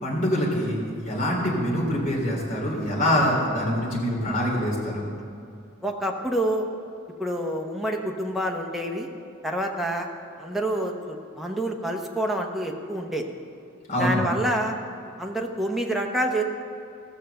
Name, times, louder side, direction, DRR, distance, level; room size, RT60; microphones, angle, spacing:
voice 1, 0.0-5.1 13.9-14.3, equal, 40° left, -3 dB, 3.2 m, -25 dB
voice 2, 5.8-6.7 7.2-9.1 9.4-10.1 10.4-13.2 14.0-14.8 15.2-16.4, right 1 dB, ahead, 1 dB, 1.0 m, -27 dB
16.0 x 6.4 x 6.8 m, 2.5 s
head